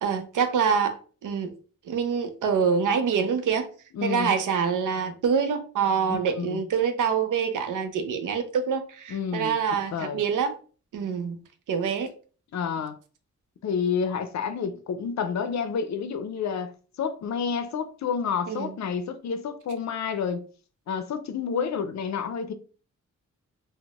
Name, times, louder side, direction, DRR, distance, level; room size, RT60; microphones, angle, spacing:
voice 1, 0.0-1.0 1.2-1.5 1.9-3.7 4.0-10.5 10.9-11.4 11.7-12.1 18.5-18.7, right 6 dB, 75° right, 0.6 m, -25 dB
voice 2, 3.9-4.3 6.1-6.6 9.1-9.6 9.9-10.2 12.5-13.0 13.6-16.7 17.0-20.4 20.9-22.5, left 6 dB, 60° left, 0.5 m, -29 dB
3.8 x 2.1 x 2.3 m
cardioid pair, 55°, 31 cm